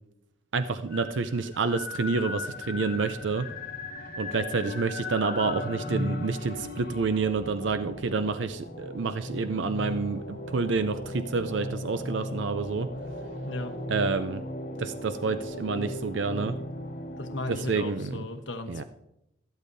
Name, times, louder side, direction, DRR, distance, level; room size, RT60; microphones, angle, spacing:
voice 1, 0.5-3.5 4.2-12.9 13.9-14.4 14.8-16.5 17.5-18.2 18.7-18.8, right 4 dB, 80° right, 10 dB, 0.5 m, -28 dB
sound 1, 0.7-17.8, left 1 dB, 55° left, 2.9 m, -37 dB
voice 2, 13.4-13.8 17.2-18.8, left 2 dB, 80° left, 6 dB, 1.1 m, -36 dB
12.5 x 12.0 x 2.7 m, 0.82 s
head